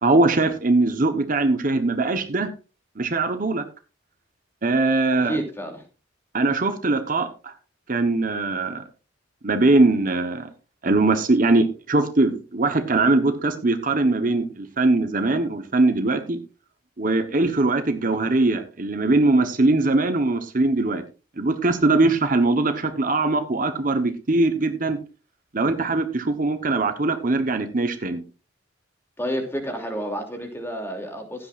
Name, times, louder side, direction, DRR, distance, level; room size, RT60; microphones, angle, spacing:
voice 1, 0.0-2.5 3.0-3.6 4.6-5.4 6.3-7.5 7.9-8.8 9.4-10.5 10.8-16.4 17.0-21.0 21.4-25.0 25.5-28.2, right 2 dB, 40° right, 7 dB, 1.1 m, -21 dB
voice 2, 5.2-5.8 29.2-31.5, equal, 10° left, 3 dB, 2.9 m, -30 dB
16.0 x 11.5 x 2.5 m, 0.33 s
head